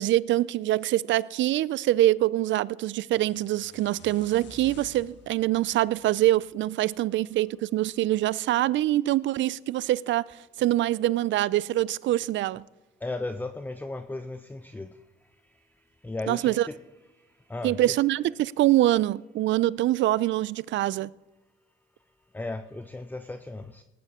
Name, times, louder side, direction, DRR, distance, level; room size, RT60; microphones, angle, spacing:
voice 1, 0.0-12.6 16.3-16.7 17.6-21.1, right 14 dB, 70° right, 0.4 m, -24 dB
sound 1, 3.1-7.2, left 5 dB, 65° left, 1.4 m, -51 dB
voice 2, 13.0-14.9 16.0-16.8 17.5-18.0 22.3-23.8, left 2 dB, 10° left, 0.6 m, -35 dB
19.0 x 10.0 x 3.6 m
cardioid pair, 90°, 20 cm